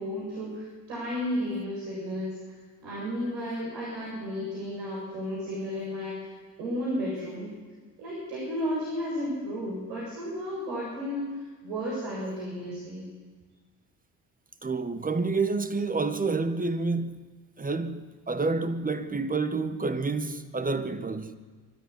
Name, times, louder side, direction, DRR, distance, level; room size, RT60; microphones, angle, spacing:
voice 1, 0.0-2.4 2.8-6.3 6.6-7.5 8.0-13.1, equal, 75° right, 7.5 m, -33 dB
voice 2, 14.6-21.4, right 3 dB, 20° right, 1.8 m, -29 dB
24.0 x 13.0 x 9.8 m
hypercardioid pair, 55°, 44 cm